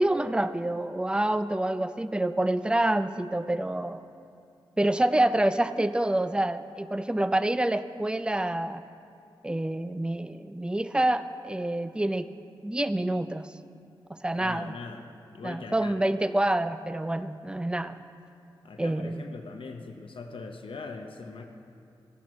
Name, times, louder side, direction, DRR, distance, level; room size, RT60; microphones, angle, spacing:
voice 1, 0.0-4.0 4.8-8.8 9.4-12.3 12.6-13.5 14.1-14.7 15.4-18.0 18.8-19.3, right 1 dB, 10° right, 12 dB, 0.4 m, -27 dB
voice 2, 14.3-15.1 15.3-16.0 18.6-21.4, left 4 dB, 75° left, 5 dB, 0.7 m, -41 dB
13.0 x 10.5 x 3.1 m, 2.6 s
cardioid pair, 55°, 9 cm